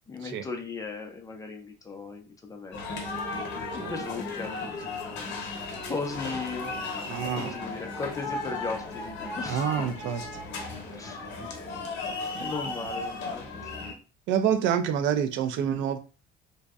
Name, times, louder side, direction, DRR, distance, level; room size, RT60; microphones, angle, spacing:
voice 1, 0.1-2.8 3.7-4.8 5.9-6.7 7.3-9.7 11.0-11.3 12.4-13.8, left 4 dB, 15° left, 0.4 m, -37 dB
sound 1, 2.7-13.9, left 3 dB, 70° left, 0.8 m, -35 dB
voice 2, 7.1-7.5 9.5-10.4 14.3-16.0, right 8 dB, 75° right, 0.4 m, -27 dB
2.6 x 2.1 x 2.3 m
cardioid pair, 150°, 20 cm